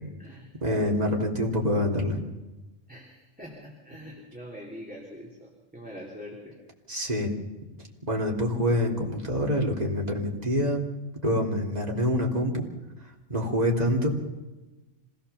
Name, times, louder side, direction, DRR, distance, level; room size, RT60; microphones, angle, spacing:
voice 1, 0.0-0.5 2.9-6.6, equal, 5° right, -3 dB, 3.4 m, -44 dB
voice 2, 0.6-2.2 6.9-7.3 8.1-10.8 11.2-12.7 13.3-14.1, equal, 30° right, -1 dB, 3.3 m, -26 dB
26.0 x 18.0 x 7.0 m, 1.1 s
omnidirectional pair, 1.3 m